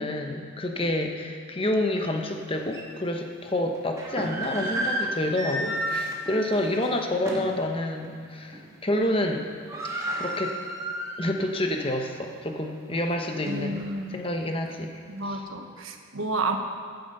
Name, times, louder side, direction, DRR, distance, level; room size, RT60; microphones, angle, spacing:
voice 1, 0.0-9.5 10.2-10.6 11.2-13.8 14.1-14.9 15.2-15.4, left 1 dB, 25° left, 3 dB, 0.9 m, -28 dB
sound 1, 2.0-2.1 2.7-2.8 3.7-7.6 8.0-8.2 8.5-8.9 9.2-9.3 9.5-11.5 11.9-12.0 12.6-13.9, right 1 dB, 15° right, 1.6 m, -32 dB
voice 2, 13.4-14.1 15.1-16.6, right 2 dB, 80° right, 5 dB, 1.0 m, -30 dB
15.0 x 7.9 x 5.5 m, 2.2 s
head